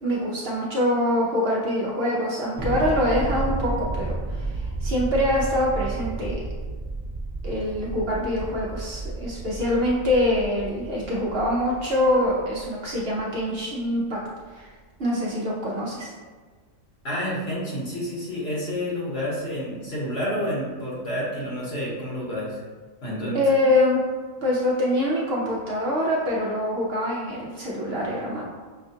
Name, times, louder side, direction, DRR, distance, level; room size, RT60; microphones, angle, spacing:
voice 1, 0.0-6.4 7.4-14.2 14.5-14.7 15.0-16.1 23.3-24.0 24.4-28.4, left 1 dB, 55° right, -4 dB, 0.8 m, -24 dB
Thunder, 2.6-13.2, right 2 dB, 40° right, 1.0 m, -32 dB
voice 2, 17.0-22.6 23.0-23.4, equal, 50° left, -7 dB, 1.3 m, -29 dB
5.7 x 2.3 x 2.7 m, 1.4 s
omnidirectional pair, 1.4 m